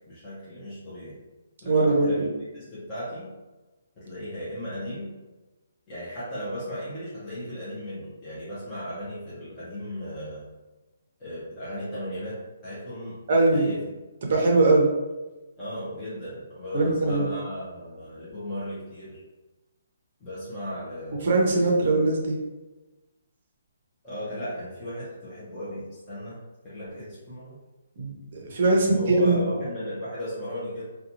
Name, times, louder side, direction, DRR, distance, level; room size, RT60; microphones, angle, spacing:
voice 1, 0.1-1.2 1.6-3.3 4.0-5.1 5.9-10.5 11.2-14.0 15.6-19.2 20.2-21.9 24.0-27.6 28.7-30.8, equal, 15° left, -11 dB, 0.6 m, -36 dB
voice 2, 1.6-2.3 13.3-13.7 14.2-14.9 16.7-17.3 21.2-22.4 28.0-29.4, right 2 dB, 40° right, -1 dB, 0.6 m, -21 dB
2.6 x 2.2 x 2.8 m, 1.1 s
hypercardioid pair, 175°, 0 cm